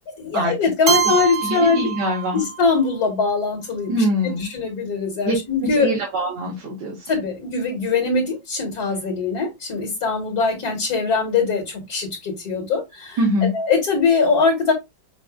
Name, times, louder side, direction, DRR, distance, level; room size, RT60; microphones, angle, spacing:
voice 1, 0.2-1.9 2.3-4.0 4.5-5.9 7.1-13.2 13.5-14.7, left 4 dB, 60° left, 2.1 m, -22 dB
Keyboard (musical), 0.9-2.8, right 7 dB, 50° right, 1.0 m, -24 dB
voice 2, 1.4-2.5 3.9-4.5 5.2-5.4 5.6-7.1 13.2-13.5, equal, 70° right, 2.0 m, -23 dB
6.5 x 2.6 x 2.5 m
omnidirectional pair, 1.9 m